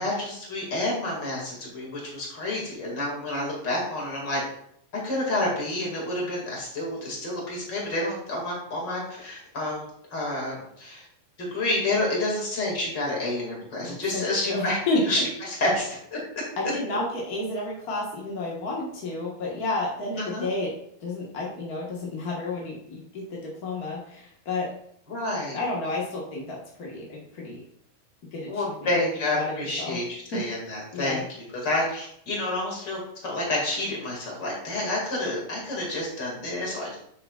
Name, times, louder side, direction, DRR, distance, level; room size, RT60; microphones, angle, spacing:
voice 1, 0.0-4.4 5.0-9.8 10.1-11.0 11.4-16.4 16.9-17.0 20.2-20.5 25.1-25.6 28.5-31.2 31.5-37.0, left 1 dB, 35° left, -3 dB, 2.4 m, -29 dB
voice 2, 14.1-15.0 16.6-20.7 21.0-24.7 25.5-27.6 28.3-28.6 29.3-30.0 30.3-30.4 30.9-31.2, left 2 dB, 50° left, -4 dB, 1.0 m, -31 dB
8.7 x 7.4 x 2.4 m, 0.69 s
omnidirectional pair, 3.9 m